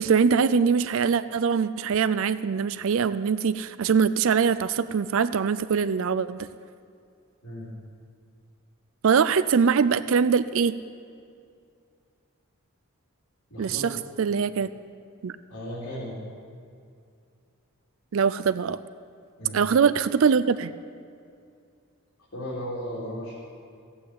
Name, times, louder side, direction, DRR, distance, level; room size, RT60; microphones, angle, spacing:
voice 1, 0.0-6.5 9.0-10.8 13.6-13.8 14.2-14.7 15.2-15.3 18.1-18.8 19.5-20.7, right 6 dB, 65° right, 14 dB, 0.4 m, -22 dB
voice 2, 13.5-13.9 15.5-16.2 19.4-19.6 22.3-23.3, equal, 70° left, -8 dB, 3.7 m, -35 dB
15.5 x 8.5 x 8.5 m, 2.3 s
head